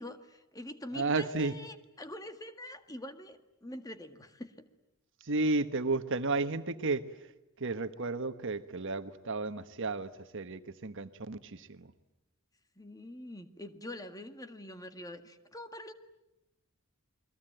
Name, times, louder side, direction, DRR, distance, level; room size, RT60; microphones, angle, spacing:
voice 1, 0.0-4.7 12.8-15.9, left 1 dB, 15° left, 9 dB, 1.8 m, -45 dB
voice 2, 0.9-1.5 5.2-7.0 7.6-11.9, right 3 dB, 60° right, 11 dB, 1.3 m, -33 dB
29.5 x 22.0 x 9.1 m, 0.92 s
head